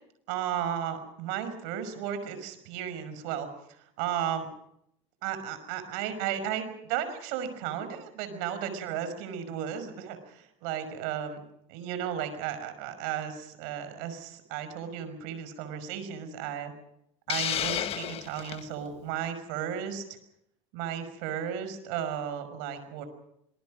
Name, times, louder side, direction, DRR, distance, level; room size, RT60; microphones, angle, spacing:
voice 1, 0.3-4.5 5.2-11.4 11.7-16.7 17.3-20.2 20.7-23.0, right 9 dB, 70° right, 10 dB, 5.6 m, -34 dB
Hiss, 17.3-18.6, left 10 dB, 40° left, 1.5 m, -31 dB
26.0 x 20.5 x 6.5 m, 0.76 s
supercardioid pair, 125°, 16 cm